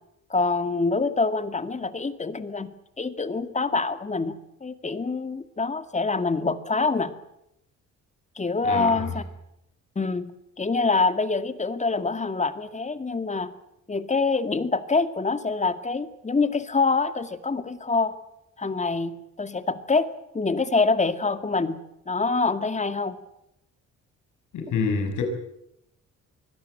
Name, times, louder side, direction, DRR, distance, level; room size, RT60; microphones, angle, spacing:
voice 1, 0.3-2.7 3.0-7.1 8.4-9.2 10.0-10.3 10.6-13.5 13.9-18.1 18.6-20.1 20.3-21.8 22.1-23.2, left 3 dB, 25° left, 11 dB, 2.1 m, -25 dB
voice 2, 8.6-9.1 24.5-25.2, left 5 dB, 80° left, 5 dB, 6.5 m, -27 dB
24.0 x 17.5 x 8.9 m, 0.81 s
cardioid pair, 90°, 30 cm